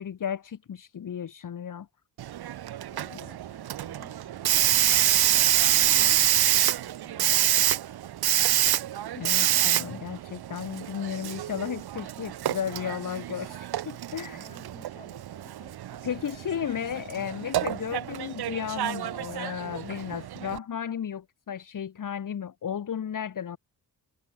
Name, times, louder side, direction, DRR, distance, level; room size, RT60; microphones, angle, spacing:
voice 1, 0.0-1.9 9.1-14.4 16.0-23.6, left 8 dB, 60° left, 1.5 m, -34 dB
Hiss, 2.2-20.6, right 12 dB, 85° right, 0.8 m, -27 dB
voice 2, 2.9-5.5 5.8-7.4 8.1-8.6 14.3-17.2, left 2 dB, 15° left, 5.8 m, -56 dB
wide cardioid pair, 165°, 37 cm